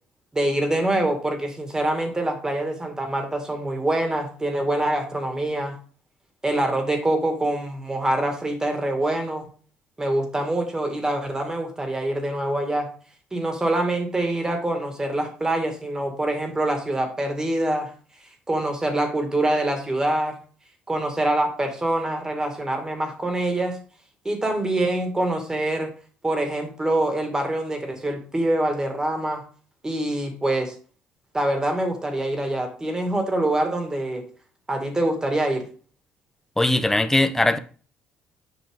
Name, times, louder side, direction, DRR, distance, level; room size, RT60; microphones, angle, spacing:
voice 1, 0.3-5.7 6.4-9.5 10.0-12.9 13.3-17.9 18.5-20.4 20.9-23.8 24.2-25.9 26.2-29.4 29.8-30.7 31.3-34.2 34.7-35.6, right 1 dB, 15° right, 2.1 m, -25 dB
voice 2, 36.6-37.6, left 2 dB, 10° left, 0.8 m, -20 dB
7.8 x 5.2 x 3.7 m
supercardioid pair, 85°, 4 cm